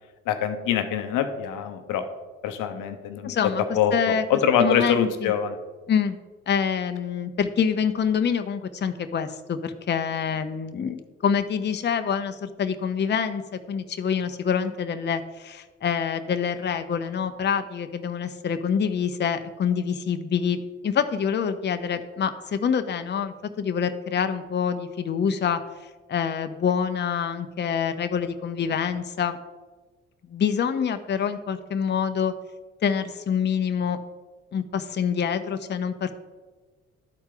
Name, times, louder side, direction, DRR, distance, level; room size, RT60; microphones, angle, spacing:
voice 1, 0.3-2.0 2.4-3.4 3.7-5.6, left 8 dB, 75° left, 8 dB, 0.7 m, -24 dB
voice 2, 3.2-3.6 3.9-4.2 4.6-5.3 5.9-6.2 6.5-13.4 13.7-25.6 26.1-29.4 30.3-32.3 32.8-34.0 34.5-36.2, left 7 dB, 35° left, 9 dB, 0.6 m, -26 dB
11.5 x 4.3 x 3.8 m, 1.3 s
hypercardioid pair, 50°, 32 cm